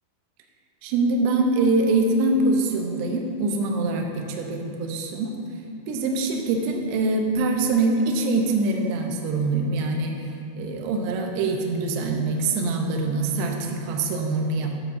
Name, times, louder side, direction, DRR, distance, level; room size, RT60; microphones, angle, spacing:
voice 1, 0.8-5.4 5.9-10.2 10.6-14.8, right 3 dB, 80° right, 2 dB, 2.6 m, -24 dB
12.0 x 7.3 x 2.7 m, 2.8 s
omnidirectional pair, 5.6 m